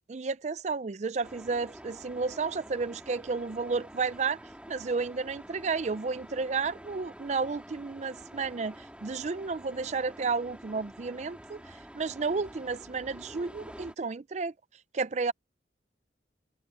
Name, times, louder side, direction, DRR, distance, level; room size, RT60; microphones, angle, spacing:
voice 1, 0.1-4.4 4.7-14.5 14.9-15.3, right 4 dB, 40° right, 0.4 m, -32 dB
sound 1, 1.2-13.9, equal, 5° right, 4.0 m, -48 dB
open air
head